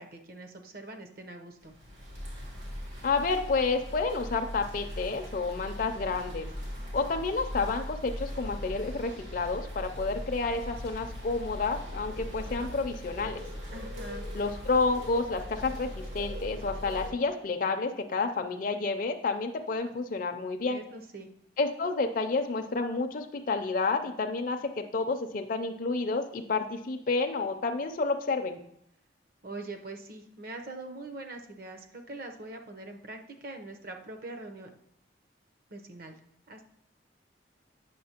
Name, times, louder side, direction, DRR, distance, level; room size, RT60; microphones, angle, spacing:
voice 1, 0.0-1.7 13.7-14.3 20.7-21.3 29.4-34.7 35.7-36.2 36.5-36.6, right 2 dB, 50° right, 5 dB, 0.7 m, -43 dB
sound 1, 1.6-17.1, equal, 85° right, 2.4 m, -40 dB
voice 2, 3.0-6.5 6.9-13.4 14.3-20.8 21.6-28.6, left 3 dB, 45° left, 5 dB, 0.4 m, -30 dB
8.5 x 6.2 x 2.9 m, 0.73 s
head